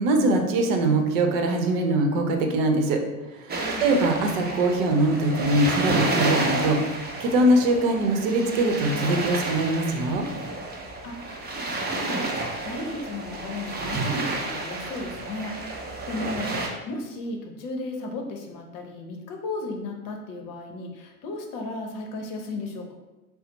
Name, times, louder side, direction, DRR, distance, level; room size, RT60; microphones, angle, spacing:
voice 1, 0.0-3.0 3.8-10.3, right 2 dB, 60° right, 4 dB, 0.8 m, -22 dB
sound 1, 3.5-16.7, right 2 dB, 20° right, 0.7 m, -30 dB
voice 2, 11.5-12.3 12.6-16.6 16.9-22.9, left 2 dB, 45° left, 3 dB, 0.8 m, -35 dB
4.1 x 2.1 x 3.9 m, 1.1 s
hypercardioid pair, 80°, 45 cm